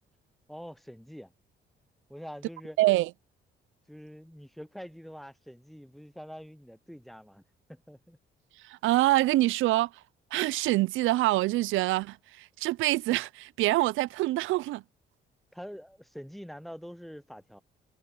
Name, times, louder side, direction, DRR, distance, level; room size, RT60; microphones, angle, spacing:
voice 1, 0.5-1.3 2.1-2.8 3.9-7.4 7.7-8.2 15.5-17.6, equal, ahead, 0.5 m, -45 dB
voice 2, 2.8-3.1 8.6-9.9 10.3-14.8, right 17 dB, 80° right, 0.4 m, -25 dB
cardioid pair, 90°, 20 cm